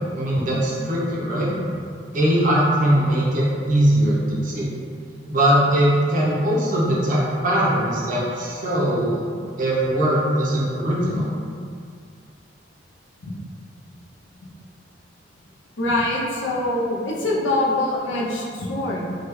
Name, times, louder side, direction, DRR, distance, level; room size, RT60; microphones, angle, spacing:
voice 1, 0.1-1.5 2.1-4.7 5.3-9.3 9.6-11.3, right 1 dB, 45° right, -6 dB, 0.6 m, -20 dB
voice 2, 15.8-19.1, left 1 dB, 75° left, -4 dB, 0.6 m, -24 dB
3.4 x 2.2 x 3.0 m, 2.2 s
head